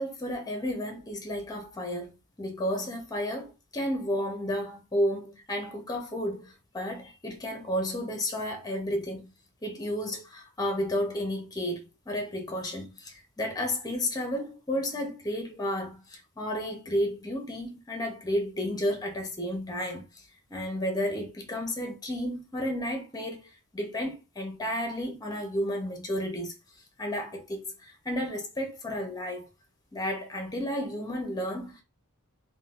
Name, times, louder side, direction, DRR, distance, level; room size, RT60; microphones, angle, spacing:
voice 1, 0.0-9.3 9.6-20.0 20.5-26.5 27.0-29.5 29.9-31.8, equal, 15° left, 0.7 m, -32 dB
3.7 x 2.2 x 2.4 m
head